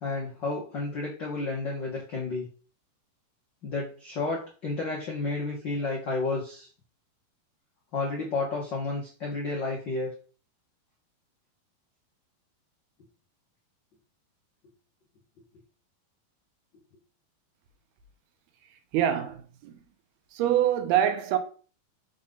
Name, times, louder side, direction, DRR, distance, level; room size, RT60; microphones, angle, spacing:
voice 1, 0.0-2.5 3.6-6.7 7.9-10.1, left 3 dB, 80° left, 1.0 m, -31 dB
voice 2, 18.9-19.7 20.3-21.4, right 10 dB, 80° right, 2.8 m, -25 dB
6.4 x 3.7 x 5.4 m
omnidirectional pair, 4.4 m